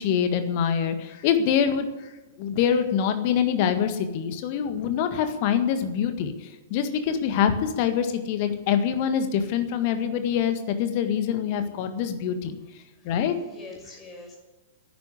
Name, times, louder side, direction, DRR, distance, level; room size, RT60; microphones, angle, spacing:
voice 1, 0.0-2.1 2.4-12.6 13.0-13.3, left 8 dB, 40° left, 8 dB, 1.7 m, -25 dB
voice 2, 13.0-14.4, left 3 dB, 15° left, 0 dB, 5.8 m, -45 dB
11.0 x 9.9 x 9.9 m, 1.1 s
figure-of-eight pair, 105°, 0 cm